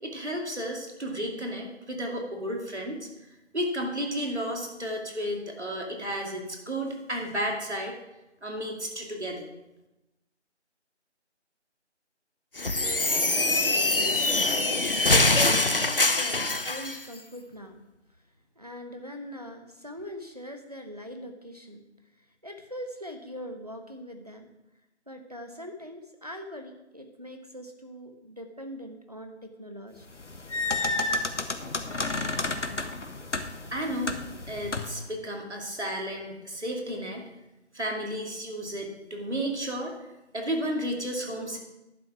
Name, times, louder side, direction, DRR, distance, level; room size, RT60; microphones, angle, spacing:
voice 1, 0.0-3.1 3.5-7.9 8.4-9.5 33.7-34.2 34.5-37.2 37.7-39.9 40.3-41.6, equal, 70° right, 1 dB, 2.5 m, -32 dB
sound 1, 12.6-17.0, left 2 dB, 50° left, 0.6 m, -23 dB
voice 2, 13.1-15.3 15.7-17.8 18.6-21.8 22.2-24.5 25.1-30.1, equal, 35° right, 5 dB, 0.9 m, -42 dB
sound 2, 30.1-35.1, left 3 dB, 80° left, 1.1 m, -31 dB
11.0 x 6.1 x 5.9 m, 0.96 s
figure-of-eight pair, 175°, 35 cm